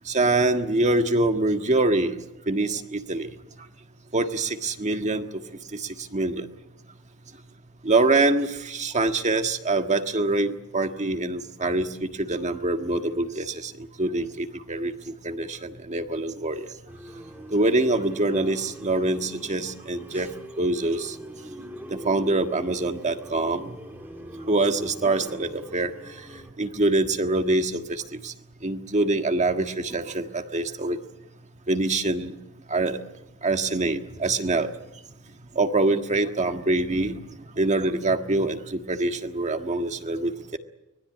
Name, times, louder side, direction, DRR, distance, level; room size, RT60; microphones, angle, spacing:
voice 1, 0.1-2.2 2.5-3.3 4.1-5.3 5.7-5.8 6.1-6.5 7.8-13.7 14.0-14.9 15.2-16.7 17.5-20.3 20.6-21.1 21.9-23.8 24.5-25.9 26.6-28.3 28.6-31.0 31.7-32.3 32.7-33.0 33.4-34.7 35.5-37.1 37.6-40.6, right 2 dB, 35° right, 6 dB, 1.6 m, -24 dB
sound 1, 16.9-26.5, equal, 10° right, 2.6 m, -42 dB
24.5 x 20.0 x 8.5 m, 0.91 s
head